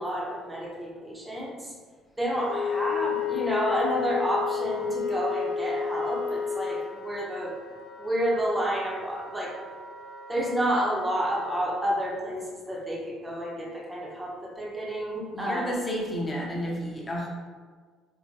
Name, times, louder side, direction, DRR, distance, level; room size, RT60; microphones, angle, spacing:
voice 1, 0.0-1.7 2.2-7.5 8.0-9.5 10.3-15.7, equal, 10° right, -4 dB, 0.8 m, -30 dB
Wind instrument woodwind instrument, 2.3-11.7, left 3 dB, 80° left, 0.9 m, -44 dB
Wind instrument woodwind instrument 2, 2.4-6.9, left 7 dB, 65° left, 0.6 m, -30 dB
voice 2, 15.3-17.3, equal, 20° left, -3 dB, 0.7 m, -31 dB
4.5 x 2.1 x 2.8 m, 1.5 s
cardioid pair, 125°, 0 cm